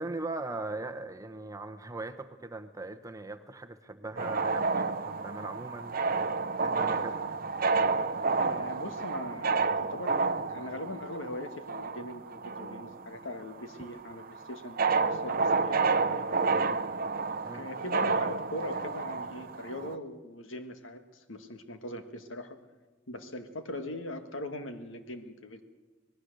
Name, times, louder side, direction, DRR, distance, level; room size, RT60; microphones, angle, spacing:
voice 1, 0.0-6.0 6.6-7.2 17.4-17.7, right 2 dB, 15° right, 8 dB, 0.9 m, -39 dB
sound 1, 4.2-13.1 13.4-19.9, right 4 dB, 45° right, 0.7 m, -30 dB
voice 2, 8.4-16.8 17.5-22.6 23.1-25.6, left 1 dB, 75° left, 7 dB, 1.7 m, -41 dB
25.5 x 19.5 x 6.6 m, 1.2 s
head